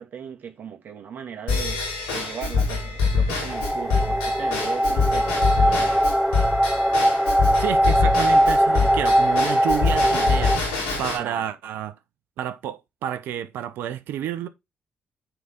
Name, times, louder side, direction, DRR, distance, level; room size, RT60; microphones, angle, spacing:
voice 1, 0.0-1.8 2.1-6.1 11.2-11.5, right 7 dB, 60° right, 2.5 m, -38 dB
Drum kit / Drum / Bell, 1.5-11.2, left 4 dB, 90° left, 4.6 m, -25 dB
sound 1, 3.5-10.6, equal, 5° right, 0.8 m, -21 dB
voice 2, 7.6-10.7 11.0-11.9 12.4-14.5, right 10 dB, 75° right, 0.9 m, -30 dB
9.2 x 4.0 x 3.7 m
hypercardioid pair, 50°, 4 cm